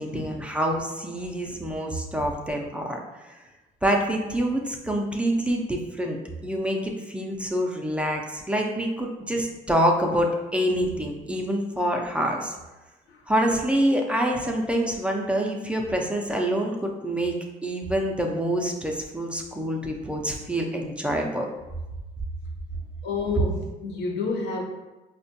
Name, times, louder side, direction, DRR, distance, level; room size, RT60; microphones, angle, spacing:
voice 1, 0.0-3.0 3.8-6.2 6.4-12.5 13.3-17.3 17.6-21.5, equal, 5° right, 1 dB, 0.4 m, -26 dB
voice 2, 23.0-24.6, left 4 dB, 85° left, 1 dB, 0.7 m, -29 dB
4.3 x 2.1 x 2.7 m, 1.1 s
cardioid pair, 110°, 17 cm